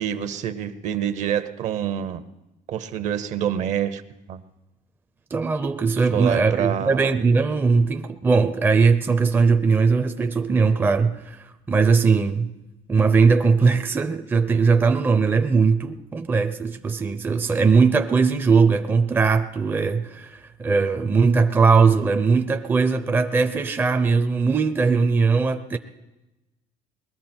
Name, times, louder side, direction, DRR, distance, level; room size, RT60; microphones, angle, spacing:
voice 1, 0.0-2.2 2.7-4.0 4.3-4.4 6.1-7.1, right 9 dB, 60° right, 0.9 m, -26 dB
voice 2, 5.3-12.5 12.9-25.8, right 4 dB, 15° right, 0.5 m, -20 dB
20.5 x 13.5 x 4.4 m
cardioid pair, 140°, 14 cm